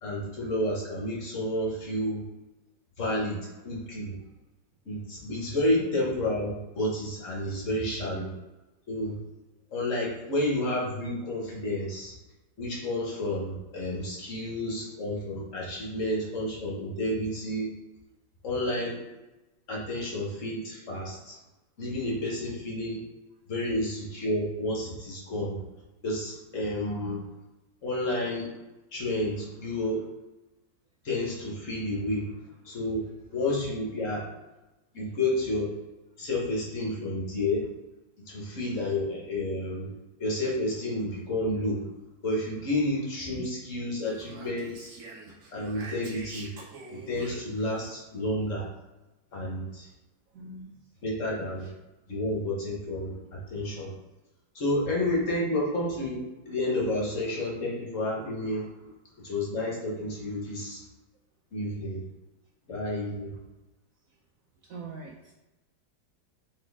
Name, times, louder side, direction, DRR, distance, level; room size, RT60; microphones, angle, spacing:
voice 1, 0.0-2.2 3.0-4.2 4.8-8.3 8.9-9.2 9.7-12.1 12.6-17.7 18.4-19.0 19.7-21.4 21.8-23.0 23.5-25.6 26.0-27.3 27.8-28.6 28.9-30.0 31.0-32.3 32.6-34.3 34.9-35.7 36.2-37.7 38.3-39.9 40.2-41.9 42.2-44.9 45.5-46.5 46.9-48.7 49.3-49.9 51.0-51.7 52.1-53.9 54.5-58.7 59.2-60.8 61.5-62.0 62.7-63.3, left 1 dB, 50° left, -3 dB, 1.3 m, -30 dB
Speech, 44.0-47.9, right 3 dB, 55° right, 1.0 m, -45 dB
voice 2, 50.3-51.0 51.6-51.7 55.5-55.6 58.8-58.9 60.4-60.7 64.1-64.2 64.6-65.3, right 3 dB, 70° right, 0 dB, 0.8 m, -45 dB
4.2 x 3.3 x 3.4 m, 1.0 s
omnidirectional pair, 1.9 m